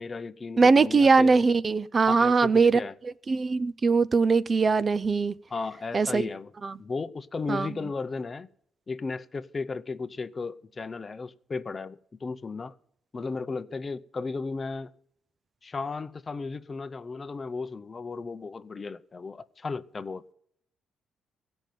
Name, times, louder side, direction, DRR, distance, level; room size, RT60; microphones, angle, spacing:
voice 1, 0.0-1.5 2.1-2.9 5.5-6.5 6.8-8.5 8.9-12.7 13.1-14.9 15.6-20.3, left 4 dB, 35° left, 0.6 m, -35 dB
voice 2, 0.6-5.3 5.9-6.3 6.6-6.7 7.5-7.7, right 4 dB, 35° right, 0.4 m, -21 dB
15.5 x 5.3 x 9.1 m
cardioid pair, 90°, 0 cm